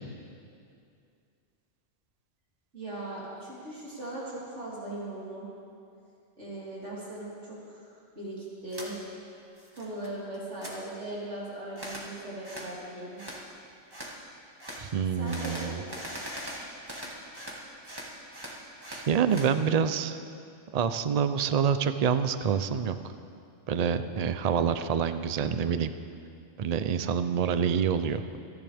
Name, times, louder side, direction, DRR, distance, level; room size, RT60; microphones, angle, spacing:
voice 1, 2.7-5.5 6.4-9.0 9.7-13.2 15.2-15.8, right 1 dB, 70° right, -8 dB, 4.3 m, -39 dB
sound 1, 8.7-8.9 9.3-10.1 10.3-10.7 11.8-12.1 12.4-12.7 13.2-13.4 13.9-14.1 14.6-14.8 15.2-17.6 17.8-19.5, equal, 20° right, 2.0 m, -40 dB
voice 2, 14.8-15.8 18.9-20.2 20.7-23.1 23.7-25.9 26.6-28.2, right 7 dB, 50° right, 10 dB, 0.5 m, -27 dB
27.0 x 10.5 x 3.5 m, 2.5 s
omnidirectional pair, 1.3 m